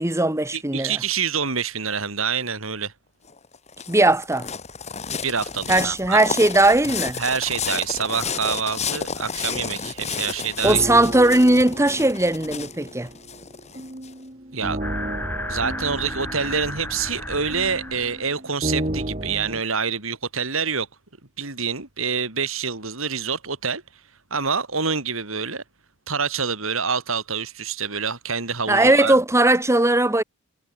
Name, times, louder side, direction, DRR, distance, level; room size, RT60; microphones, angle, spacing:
voice 1, 0.0-1.0 3.9-4.5 5.7-7.2 10.6-13.1 28.7-30.2, right 2 dB, 15° right, 1.7 m, -18 dB
voice 2, 0.5-2.9 5.2-6.2 7.2-10.8 14.5-14.8 15.5-20.9 21.4-23.8 24.3-25.6 26.1-29.2, right 6 dB, 70° right, 4.2 m, -26 dB
sound 1, 3.3-14.1, left 6 dB, 35° left, 2.5 m, -31 dB
sound 2, 10.6-19.6, right 1 dB, 35° right, 4.5 m, -33 dB
sound 3, 14.8-18.3, left 1 dB, 10° left, 3.6 m, -33 dB
head